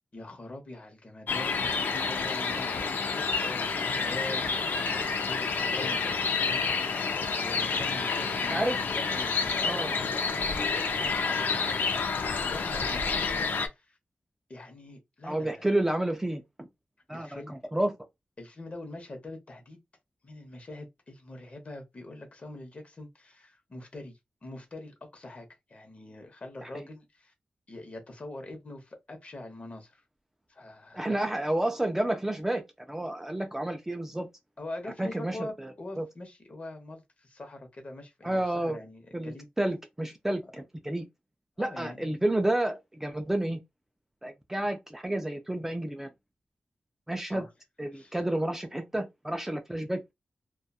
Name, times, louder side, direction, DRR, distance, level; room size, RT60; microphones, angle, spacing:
voice 1, 0.1-7.0 7.4-14.0 14.5-15.6 17.1-17.5 18.4-19.8 20.2-27.3 27.7-30.0 30.5-31.2 34.6-39.5 41.6-42.1 47.3-47.5 47.9-48.2, left 2 dB, 40° left, 0.9 m, -44 dB
sound 1, 1.3-13.7, left 4 dB, 75° left, 0.4 m, -29 dB
voice 2, 9.6-10.6 11.0-11.3 15.2-16.7 17.1-17.9 26.6-26.7 30.9-32.6 32.9-34.3 35.0-36.1 38.2-38.8 39.1-41.1 41.6-43.6 44.2-46.1 47.1-47.4 47.8-50.1, right 1 dB, 10° right, 0.3 m, -30 dB
2.7 x 2.2 x 2.3 m
wide cardioid pair, 115°, 3 cm